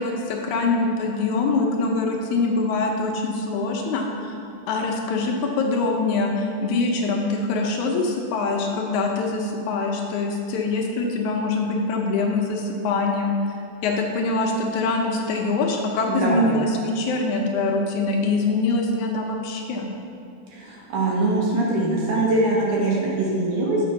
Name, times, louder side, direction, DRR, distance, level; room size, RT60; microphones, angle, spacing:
voice 1, 0.0-4.4 4.7-13.3 13.8-19.9, left 3 dB, 75° left, 1 dB, 2.0 m, -24 dB
voice 2, 16.1-16.5 20.5-23.8, right 2 dB, 70° right, -3 dB, 2.8 m, -22 dB
7.6 x 5.1 x 5.9 m, 2.6 s
omnidirectional pair, 3.6 m